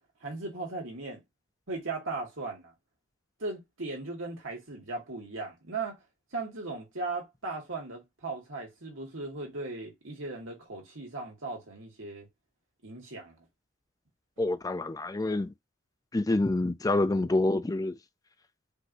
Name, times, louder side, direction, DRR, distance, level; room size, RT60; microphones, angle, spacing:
voice 1, 0.2-1.2 1.7-2.7 3.4-6.0 6.3-12.3 12.8-13.5, right 3 dB, 90° right, 2.1 m, -37 dB
voice 2, 14.4-15.5 16.1-18.0, left 2 dB, 20° left, 0.4 m, -27 dB
5.1 x 3.1 x 2.7 m
head